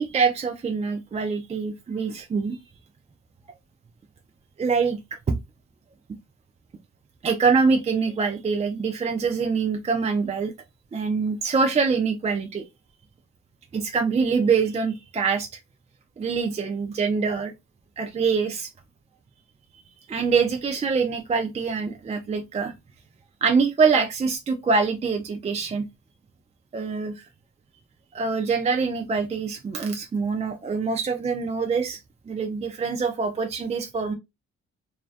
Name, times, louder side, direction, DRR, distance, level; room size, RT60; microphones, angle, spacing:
voice 1, 0.0-2.6 4.6-5.0 5.3-5.4 7.2-10.5 10.9-12.6 13.7-15.5 16.2-17.5 18.0-18.7 20.1-22.7 23.4-25.8 26.7-27.2 28.1-32.0 32.3-34.1, right 5 dB, 20° right, 0.4 m, -24 dB
2.3 x 2.1 x 2.4 m
supercardioid pair, 70°, 30 cm